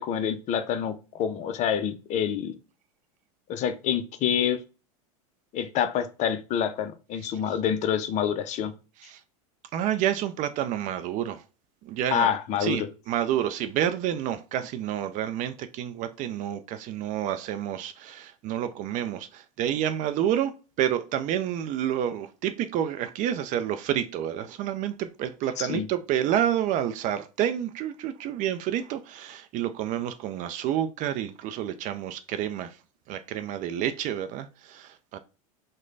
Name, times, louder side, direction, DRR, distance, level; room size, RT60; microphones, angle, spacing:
voice 1, 0.0-2.6 3.5-4.6 5.5-8.7 12.1-12.9 25.6-25.9, left 8 dB, 40° left, 0.5 m, -27 dB
voice 2, 9.7-11.4 11.8-12.3 12.6-20.5 20.8-32.8 33.1-35.2, right 10 dB, 40° right, 0.4 m, -29 dB
3.1 x 2.2 x 3.7 m
hypercardioid pair, 105°, 19 cm